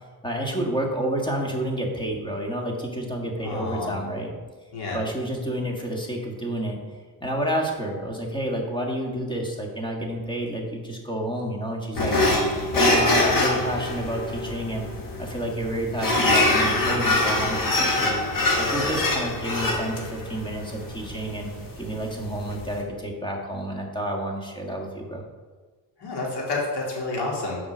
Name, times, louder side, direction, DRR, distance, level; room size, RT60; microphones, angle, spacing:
voice 1, 0.2-4.3 4.9-6.8 7.2-12.1 12.7-14.9 15.2-18.2 18.6-21.5 21.8-25.2, right 1 dB, 10° left, 0 dB, 1.6 m, -29 dB
voice 2, 3.4-4.0 4.7-5.0 26.0-27.6, left 3 dB, 70° left, -3 dB, 2.6 m, -29 dB
sound 1, 12.0-22.8, left 2 dB, 50° left, 1.8 m, -24 dB
7.2 x 4.8 x 6.2 m, 1.4 s
cardioid pair, 105°, 41 cm